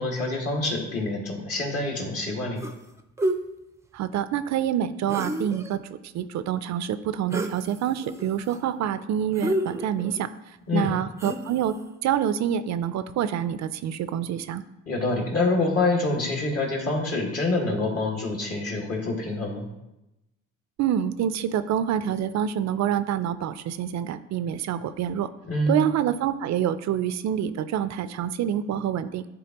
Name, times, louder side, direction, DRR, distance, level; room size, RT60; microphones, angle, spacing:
voice 1, 0.0-2.6 10.7-10.9 14.9-19.6 25.5-25.8, left 2 dB, 50° left, 0 dB, 1.9 m, -26 dB
sound 1, 2.6-2.9 3.2-3.4 5.1-5.7 7.3-7.6 8.0-8.6 9.3-10.2 11.2-11.7, right 1 dB, 10° right, 0.5 m, -29 dB
voice 2, 3.9-11.7 12.0-14.6 20.8-25.3 25.7-29.3, right 9 dB, 65° right, 13 dB, 0.4 m, -27 dB
10.5 x 3.7 x 2.9 m, 0.93 s
cardioid pair, 90°, 30 cm